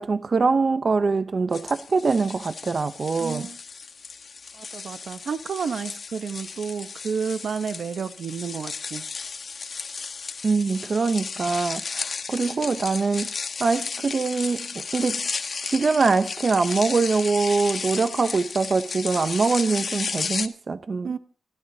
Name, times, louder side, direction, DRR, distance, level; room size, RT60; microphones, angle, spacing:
voice 1, 0.0-3.5 10.4-13.3 13.6-15.2 15.6-21.1, right 4 dB, 50° right, 0.9 m, -23 dB
sound 1, 1.5-20.5, left 5 dB, 60° left, 1.4 m, -34 dB
voice 2, 3.2-3.6 4.5-9.0 21.0-21.2, right 6 dB, 75° right, 1.1 m, -31 dB
28.5 x 14.5 x 2.9 m
cardioid pair, 80°, 0 cm